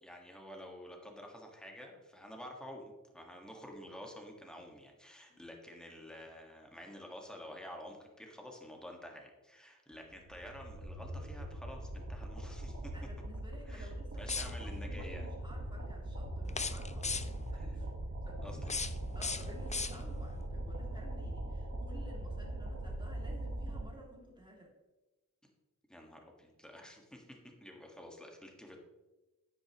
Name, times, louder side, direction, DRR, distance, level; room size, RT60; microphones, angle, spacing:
voice 1, 0.0-12.9 13.6-15.3 17.5-17.7 18.4-18.8 25.9-28.8, equal, ahead, 1 dB, 1.6 m, -50 dB
sound 1, 10.0-23.8, right 1 dB, 50° right, 1.6 m, -41 dB
voice 2, 12.9-17.2 17.5-17.9 18.3-18.7 19.1-24.7, equal, 15° right, -2 dB, 2.4 m, -53 dB
sound 2, 14.2-14.9 16.5-17.5 18.5-20.3, left 4 dB, 20° left, 0.3 m, -39 dB
9.6 x 9.0 x 3.0 m, 1.1 s
wide cardioid pair, 85°, 33 cm